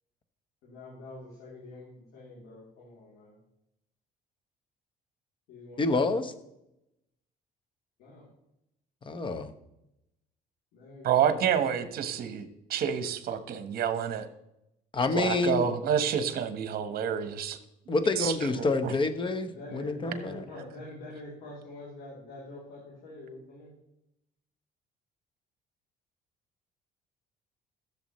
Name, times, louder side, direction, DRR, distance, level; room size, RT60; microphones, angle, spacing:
voice 1, 0.6-3.4 5.5-6.2 8.0-8.2 10.7-11.4 11.6-11.7 18.3-18.7 19.5-23.7, left 1 dB, 85° left, -6 dB, 3.1 m, -45 dB
voice 2, 5.8-6.3 9.0-9.5 14.9-15.7 17.9-20.4, left 3 dB, 30° left, 10 dB, 1.0 m, -28 dB
voice 3, 11.0-14.3 15.1-17.6 18.2-18.3 18.6-18.7, right 8 dB, 60° right, 9 dB, 1.2 m, -28 dB
15.0 x 7.2 x 3.1 m, 0.85 s
cardioid pair, 110°, 17 cm